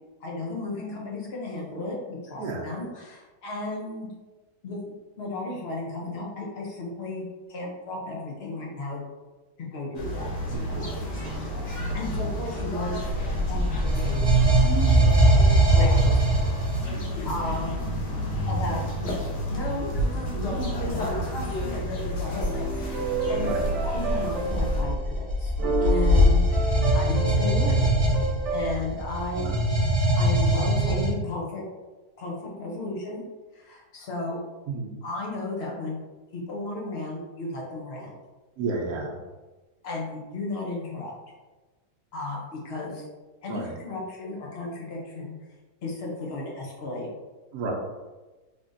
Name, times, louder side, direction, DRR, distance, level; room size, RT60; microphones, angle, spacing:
voice 1, 0.2-4.1 4.6-9.0 9.6-10.3 11.9-13.0 13.4-15.1 15.7-16.2 17.2-17.8 18.5-23.5 23.8-25.5 25.8-26.5 26.9-27.9 28.5-29.6 30.1-31.6 32.2-33.2 33.5-34.4 35.0-36.0 36.3-38.1 39.8-41.1 42.1-43.1 43.4-45.4 45.8-47.1, left 2 dB, 60° left, -3 dB, 0.6 m, -34 dB
sound 1, 9.9-24.8, equal, 80° left, 1.4 m, -31 dB
voice 2, 10.5-11.0 11.2-11.4 16.9-17.2 23.4-23.7 29.3-29.7 34.7-35.0 38.6-39.2 43.5-43.7 47.5-47.7, right 3 dB, 65° right, 0 dB, 1.1 m, -33 dB
sound 2, 12.8-17.0 22.3-22.5 23.3-31.1, right 1 dB, 25° right, 1.2 m, -22 dB
sound 3, 22.4-25.0 25.5-28.8, right 3 dB, 85° right, 1.4 m, -30 dB
3.5 x 3.3 x 2.5 m, 1.2 s
omnidirectional pair, 1.8 m